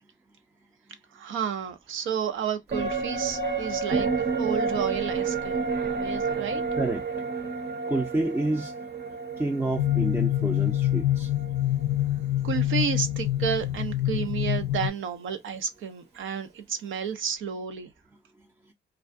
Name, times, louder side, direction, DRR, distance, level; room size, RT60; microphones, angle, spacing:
voice 1, 1.1-4.1 4.4-5.7 6.0-6.6 12.4-17.9, right 7 dB, 85° right, 0.7 m, -31 dB
sound 1, 2.7-12.2 12.5-12.6, right 4 dB, 55° right, 0.9 m, -30 dB
voice 2, 7.9-8.7 9.4-11.3, right 2 dB, 15° right, 0.5 m, -28 dB
sound 2, 9.7-14.9, left 14 dB, 75° left, 0.4 m, -26 dB
2.4 x 2.2 x 2.5 m
cardioid pair, 90°, 20 cm